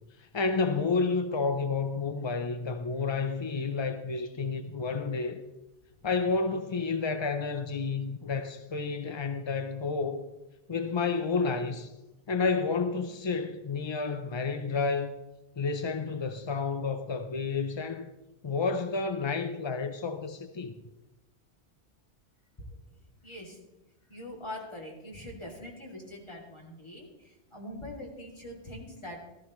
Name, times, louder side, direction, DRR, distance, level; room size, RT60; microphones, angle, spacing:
voice 1, 0.2-5.4 6.0-10.3 10.7-11.9 12.3-15.1 15.6-18.1 18.4-20.7, left 4 dB, 40° left, 0.4 m, -30 dB
voice 2, 23.2-23.6 24.1-29.2, left 1 dB, 25° left, 2.8 m, -43 dB
14.5 x 14.5 x 3.1 m
omnidirectional pair, 1.2 m